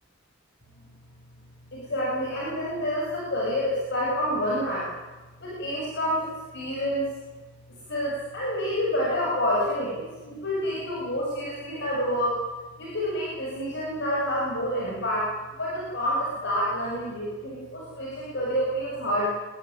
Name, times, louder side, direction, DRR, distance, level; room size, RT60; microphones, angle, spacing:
voice 1, 1.7-4.9 5.4-7.1 7.9-12.4 12.8-19.3, equal, 60° left, -4 dB, 7.9 m, -28 dB
26.5 x 23.0 x 9.6 m, 1.2 s
head